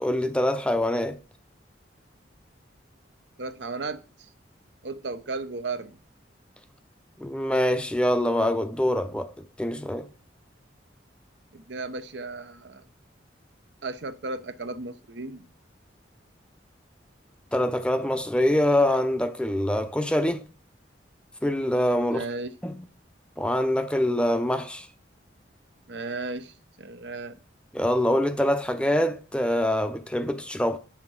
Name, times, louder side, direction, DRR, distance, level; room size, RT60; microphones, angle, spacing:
voice 1, 0.0-1.2 7.2-9.3 9.6-10.1 17.5-20.4 21.4-22.2 22.6-22.8 23.4-24.9 27.7-30.8, left 1 dB, 5° left, 0.5 m, -24 dB
voice 2, 3.4-4.3 4.8-6.0 11.5-12.8 13.8-15.4 22.1-22.5 25.9-27.4, right 3 dB, 70° right, 0.7 m, -35 dB
8.8 x 5.9 x 4.7 m
head